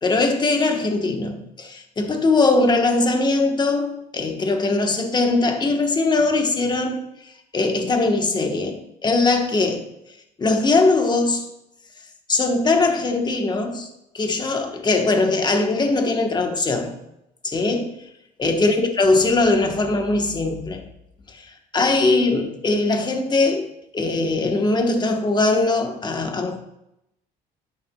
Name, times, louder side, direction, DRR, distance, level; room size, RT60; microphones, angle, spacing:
voice 1, 0.0-7.0 7.5-9.9 10.4-11.5 12.3-13.9 14.1-17.0 17.4-17.9 18.4-20.8 21.3-21.5 21.7-23.7 23.9-26.6, left 3 dB, 25° left, 4 dB, 1.2 m, -21 dB
10.5 x 9.1 x 2.3 m, 0.85 s
cardioid pair, 110°, 17 cm